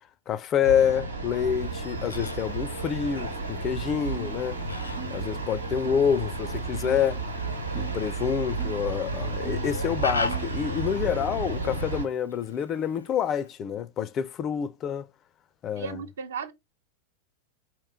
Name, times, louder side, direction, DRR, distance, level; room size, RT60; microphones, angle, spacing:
voice 1, 0.3-4.6 5.1-7.2 7.7-15.1 15.6-16.0, left 8 dB, 30° left, 0.4 m, -27 dB
sound 1, 0.6-12.1, right 3 dB, 85° right, 1.0 m, -32 dB
Fowl, 1.5-13.5, left 3 dB, 80° left, 0.7 m, -40 dB
sound 2, 4.1-4.4 5.0-5.2 5.8-6.1 6.8-7.1 7.7-8.0 8.6-8.8 9.4-9.7 10.3-10.6, right 11 dB, 25° right, 0.7 m, -41 dB
voice 2, 15.8-16.5, right 6 dB, 65° right, 0.6 m, -35 dB
4.5 x 3.0 x 3.6 m
figure-of-eight pair, 90°, 0 cm